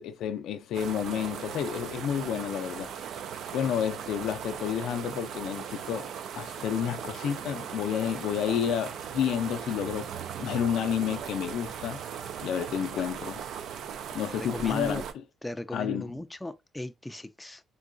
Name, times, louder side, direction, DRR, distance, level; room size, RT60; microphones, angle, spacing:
voice 1, 0.0-2.9 3.5-10.1 10.4-12.0 12.4-13.4 14.1-15.0 15.7-16.0, left 9 dB, 80° left, 0.4 m, -30 dB
sound 1, 0.7-15.1, right 8 dB, 75° right, 0.4 m, -38 dB
voice 2, 14.4-15.0 15.4-17.6, left 1 dB, 10° left, 0.3 m, -37 dB
3.7 x 2.3 x 2.5 m
cardioid pair, 90°, 0 cm